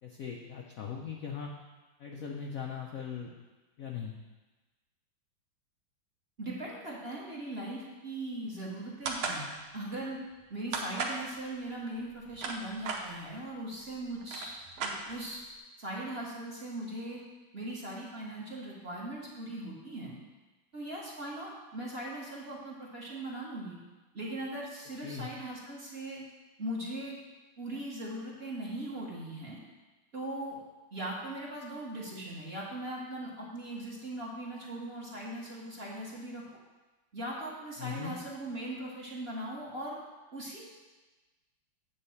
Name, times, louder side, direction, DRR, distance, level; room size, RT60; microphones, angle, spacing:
voice 1, 0.0-1.5 2.0-3.3 3.8-4.2 25.0-25.3 37.8-38.2, left 7 dB, 75° left, 0 dB, 0.7 m, -39 dB
voice 2, 6.4-10.2 10.5-15.4 15.8-17.2 17.5-20.2 20.7-23.8 24.1-26.2 26.6-27.2 27.6-29.6 30.1-30.6 30.9-36.5 37.1-40.0 40.3-40.7, right 1 dB, 35° right, -4 dB, 1.2 m, -39 dB
sound 1, 9.1-9.4 10.7-11.2 12.1-13.0 13.9-14.0 14.2-15.4, right 5 dB, 75° right, 1.7 m, -35 dB
8.7 x 4.0 x 7.0 m, 1.2 s
omnidirectional pair, 2.4 m